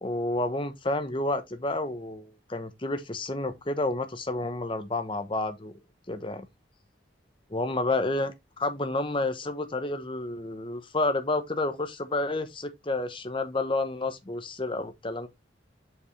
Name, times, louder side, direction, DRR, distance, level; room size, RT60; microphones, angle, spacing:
voice 1, 0.0-5.7 6.1-6.5 7.5-15.3, left 2 dB, 25° left, 1.0 m, -30 dB
7.0 x 5.3 x 3.3 m
head